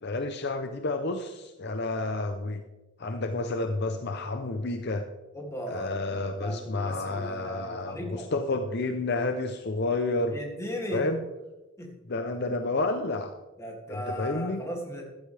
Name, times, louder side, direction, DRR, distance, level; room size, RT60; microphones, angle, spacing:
voice 1, 0.0-2.6 3.0-5.1 5.7-10.4 10.9-11.3 12.1-13.4 13.9-14.6, left 2 dB, 50° left, 7 dB, 0.7 m, -30 dB
voice 2, 5.3-8.3 10.3-11.1 11.8-11.9 13.6-15.0, equal, 15° left, -1 dB, 2.5 m, -37 dB
15.0 x 11.5 x 3.4 m, 1.1 s
head